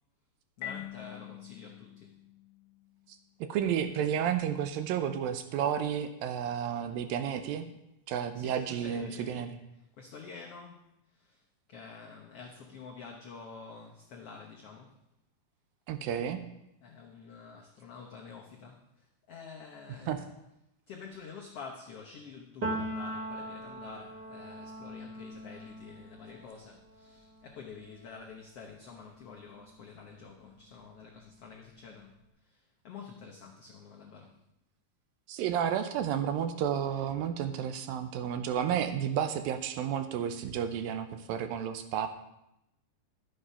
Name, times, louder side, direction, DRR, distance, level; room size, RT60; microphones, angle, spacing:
voice 1, 0.6-2.2 8.3-11.4 11.7-15.0 16.8-20.2 20.9-34.4, left 5 dB, 90° left, 0 dB, 1.3 m, -48 dB
Marimba xylophone, 0.6-3.3, left 12 dB, 60° left, 2.5 m, -45 dB
voice 2, 3.5-7.7 8.1-9.5 15.9-16.4 20.1-20.2 35.3-42.1, right 9 dB, 75° right, 9 dB, 2.3 m, -31 dB
Piano, 22.6-30.2 30.6-32.1, right 1 dB, 55° right, 1.1 m, -42 dB
12.0 x 7.7 x 5.6 m, 0.85 s
omnidirectional pair, 4.4 m